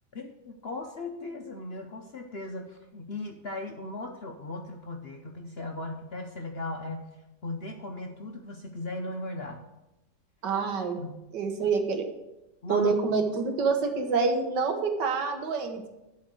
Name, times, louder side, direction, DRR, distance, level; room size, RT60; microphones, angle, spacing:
voice 1, 0.1-7.2 7.4-9.6 11.0-11.2 12.6-13.2, left 2 dB, 50° left, 3 dB, 0.8 m, -38 dB
voice 2, 10.4-11.0 11.3-12.0 12.7-15.9, right 4 dB, 75° right, 5 dB, 1.8 m, -27 dB
11.5 x 4.4 x 7.6 m, 0.96 s
omnidirectional pair, 1.9 m